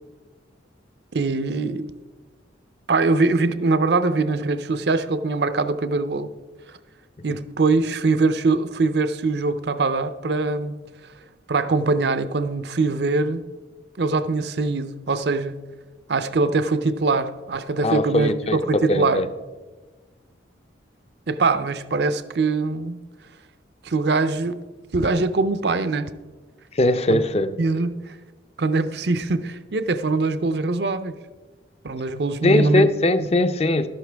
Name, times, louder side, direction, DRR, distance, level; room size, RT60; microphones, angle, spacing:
voice 1, 1.1-1.8 2.9-6.3 7.2-10.8 11.5-13.4 14.0-15.6 16.1-19.2 21.3-23.0 23.8-24.6 24.9-26.1 27.1-27.2 27.6-28.2 28.6-31.1 31.8-32.9, right 3 dB, 60° right, 0.6 m, -22 dB
voice 2, 17.8-19.3 26.7-27.6 32.4-33.9, left 2 dB, 35° left, 0.5 m, -20 dB
12.5 x 11.0 x 3.4 m
head